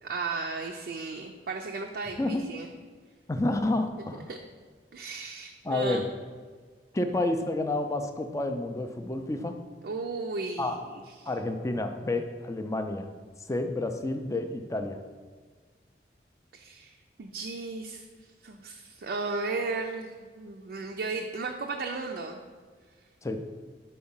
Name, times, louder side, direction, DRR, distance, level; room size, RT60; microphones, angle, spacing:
voice 1, 0.0-2.7 4.3-4.4 4.9-6.1 9.8-10.9 11.2-11.3 16.5-18.0 18.4-22.4, right 3 dB, 60° right, 2 dB, 0.4 m, -35 dB
voice 2, 2.2-2.5 3.3-4.3 5.6-6.1 6.9-9.6 10.6-10.8 11.3-13.1 13.5-15.0 23.2-23.4, left 2 dB, 15° left, 7 dB, 0.4 m, -29 dB
4.7 x 4.4 x 5.5 m, 1.5 s
head